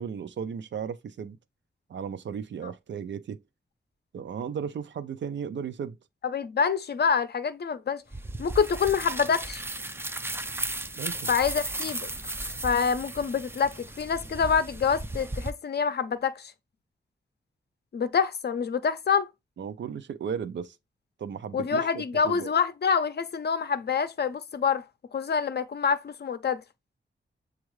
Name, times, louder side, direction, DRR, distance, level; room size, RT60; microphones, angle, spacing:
voice 1, 0.0-1.4 1.9-3.4 4.1-6.0 11.0-11.3 19.6-20.8 21.2-22.5, right 7 dB, 75° right, 0.4 m, -35 dB
voice 2, 6.2-8.0 8.4-9.6 11.3-12.1 12.6-16.5 17.9-19.3 21.5-24.8 25.1-26.6, left 6 dB, 60° left, 0.5 m, -26 dB
sound 1, 8.1-15.5, right 2 dB, 10° right, 0.3 m, -35 dB
7.1 x 2.4 x 3.1 m
wide cardioid pair, 125°, 19 cm